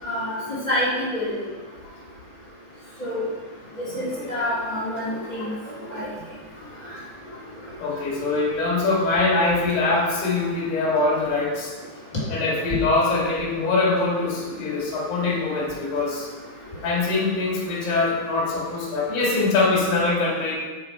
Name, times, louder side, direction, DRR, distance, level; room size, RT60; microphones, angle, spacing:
voice 1, 0.0-0.4 0.7-1.4 3.0-3.3 3.9-5.5 5.9-6.1, left 1 dB, 75° left, -9 dB, 0.4 m, -27 dB
voice 2, 3.9-4.3 7.8-11.7 12.3-16.3 16.8-20.5, left 3 dB, 60° left, -4 dB, 3.5 m, -23 dB
8.4 x 5.6 x 4.7 m, 1.3 s
omnidirectional pair, 5.0 m